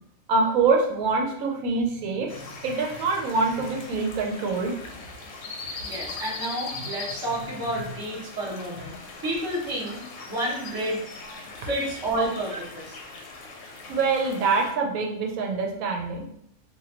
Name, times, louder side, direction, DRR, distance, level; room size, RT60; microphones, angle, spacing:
voice 1, 0.3-2.4 2.6-4.7 13.9-16.3, right 4 dB, 90° right, 1 dB, 1.0 m, -25 dB
sound 1, 2.3-14.7, left 3 dB, 70° left, 0.9 m, -40 dB
voice 2, 5.8-8.9 9.2-11.0 11.5-13.0, right 1 dB, 20° right, -8 dB, 1.0 m, -30 dB
3.0 x 2.5 x 2.8 m, 0.71 s
omnidirectional pair, 1.4 m